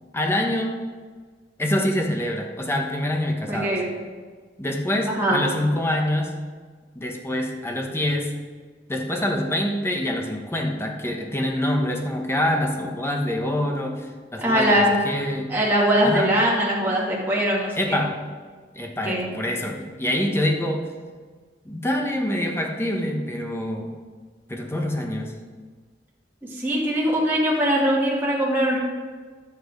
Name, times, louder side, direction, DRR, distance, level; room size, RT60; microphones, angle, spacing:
voice 1, 0.1-0.7 1.6-3.8 4.6-6.4 6.9-8.3 8.9-14.1 14.3-15.5 16.0-16.3 17.8-18.2 18.7-20.8 21.6-23.9 24.5-25.3, left 1 dB, 15° left, 1 dB, 1.1 m, -25 dB
voice 2, 3.5-3.9 5.1-5.4 14.4-15.0 15.5-17.7 19.0-19.3 26.5-28.8, equal, 10° right, -6 dB, 2.6 m, -21 dB
10.5 x 8.3 x 5.1 m, 1.5 s
head